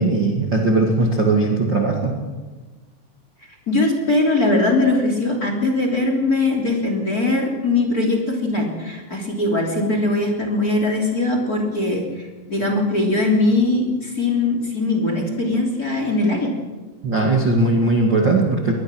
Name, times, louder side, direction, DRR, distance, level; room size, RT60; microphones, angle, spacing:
voice 1, 0.0-2.2 17.0-18.7, right 2 dB, 35° right, 0 dB, 2.2 m, -19 dB
voice 2, 3.7-16.5, left 2 dB, 25° left, 2 dB, 3.3 m, -21 dB
23.5 x 20.0 x 6.2 m, 1.2 s
omnidirectional pair, 4.9 m